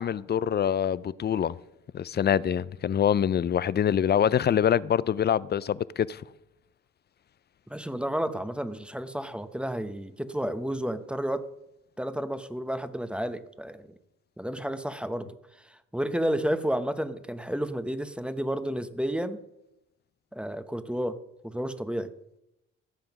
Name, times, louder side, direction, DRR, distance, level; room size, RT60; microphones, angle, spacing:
voice 1, 0.0-1.6 1.9-6.2, left 9 dB, 35° left, 0.4 m, -25 dB
voice 2, 7.7-11.5 12.0-13.9 14.4-15.4 15.6-19.4 20.3-22.1, equal, 5° right, 0.9 m, -31 dB
15.0 x 7.6 x 5.9 m
cardioid pair, 90°, 30 cm